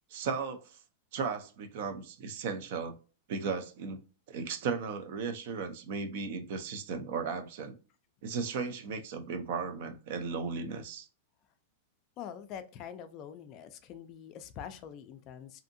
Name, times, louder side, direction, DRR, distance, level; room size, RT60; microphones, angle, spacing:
voice 1, 0.1-0.6 1.1-2.9 3.3-4.0 4.3-7.8 8.2-11.1, right 5 dB, 55° right, 0.5 m, -35 dB
voice 2, 12.2-15.6, left 9 dB, 35° left, 0.3 m, -45 dB
2.7 x 2.6 x 2.5 m
supercardioid pair, 160°, 0 cm